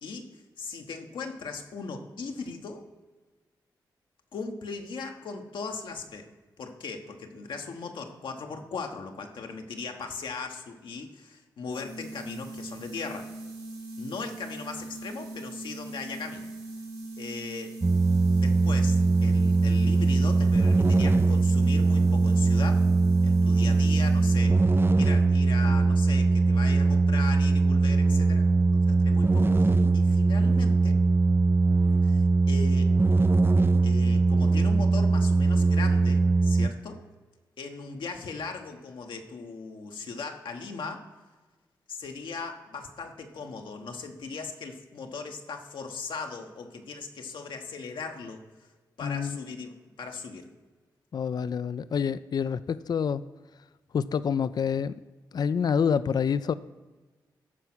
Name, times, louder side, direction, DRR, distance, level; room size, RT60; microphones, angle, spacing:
voice 1, 0.0-2.9 4.3-6.3 6.6-13.3 14.0-16.5 17.2-17.7 18.3-22.9 23.2-24.6 25.0-28.5 28.7-31.0 32.0-32.9 33.8-37.0 37.6-41.0 41.9-48.7 49.0-50.5, left 4 dB, 80° left, 4 dB, 1.2 m, -38 dB
sound 1, 11.7-24.6, right 2 dB, 85° right, 3.4 m, -40 dB
sound 2, 17.8-36.7, right 3 dB, 30° right, 0.4 m, -21 dB
voice 2, 49.0-49.4 51.1-53.2 53.9-54.9 55.3-56.5, left 7 dB, 55° left, 15 dB, 0.4 m, -27 dB
13.5 x 4.7 x 6.1 m, 1.3 s
cardioid pair, 50°, 8 cm